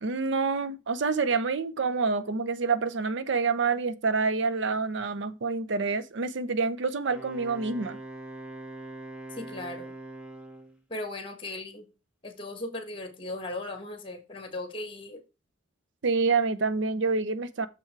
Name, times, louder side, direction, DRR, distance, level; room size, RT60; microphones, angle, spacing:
voice 1, 0.0-8.0 16.0-17.7, right 4 dB, 60° right, 0.6 m, -27 dB
Wind instrument woodwind instrument, 7.0-10.8, right 1 dB, 5° right, 1.0 m, -42 dB
voice 2, 9.3-9.9 10.9-11.9 12.2-15.2, left 2 dB, 25° left, 1.9 m, -37 dB
6.9 x 5.6 x 4.6 m
head